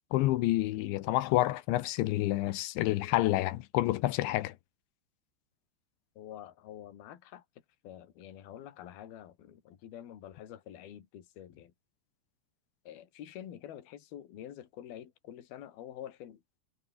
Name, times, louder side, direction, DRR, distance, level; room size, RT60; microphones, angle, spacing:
voice 1, 0.1-4.5, left 16 dB, 80° left, 3.2 m, -28 dB
voice 2, 6.2-7.5 7.8-11.7 12.9-16.4, left 11 dB, 55° left, 4.0 m, -47 dB
omnidirectional pair, 5.7 m